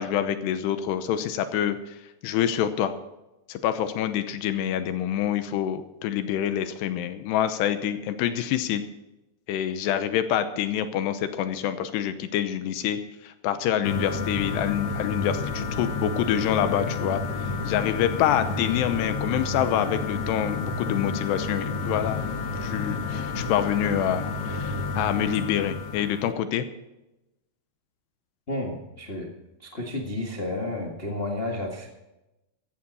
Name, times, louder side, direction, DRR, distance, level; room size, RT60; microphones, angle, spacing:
voice 1, 0.0-2.0 2.2-2.9 3.5-8.8 9.5-22.2 22.6-26.6, left 10 dB, 85° left, 10 dB, 3.0 m, -26 dB
sound 1, 13.8-26.3, left 3 dB, 50° left, 1.9 m, -30 dB
voice 2, 28.5-29.3 29.6-31.9, left 1 dB, 70° left, 0 dB, 0.5 m, -31 dB
15.0 x 14.5 x 4.2 m, 0.96 s
omnidirectional pair, 4.8 m